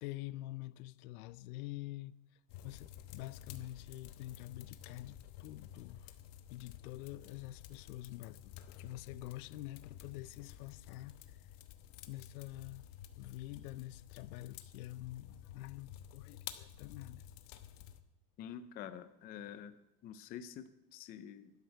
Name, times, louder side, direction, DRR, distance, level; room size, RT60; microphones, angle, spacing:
voice 1, 0.0-2.2 2.6-6.1 6.5-11.4 12.1-12.9 13.2-17.3, left 16 dB, 65° left, 0.7 m, -47 dB
sound 1, 2.5-18.0, left 11 dB, 45° left, 1.1 m, -52 dB
voice 2, 18.4-19.7 20.0-21.5, left 9 dB, 20° left, 0.4 m, -47 dB
16.5 x 12.0 x 4.6 m
supercardioid pair, 150°, 48 cm